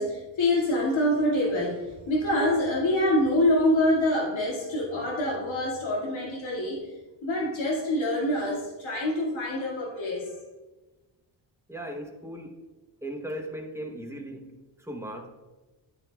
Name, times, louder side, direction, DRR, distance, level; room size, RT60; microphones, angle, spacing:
voice 1, 0.0-6.9 7.2-10.3, left 1 dB, 80° left, -4 dB, 2.2 m, -26 dB
voice 2, 11.7-12.6 13.0-15.3, right 1 dB, 5° right, 2 dB, 0.8 m, -37 dB
10.5 x 9.6 x 2.3 m, 1.2 s
wide cardioid pair, 160°, 46 cm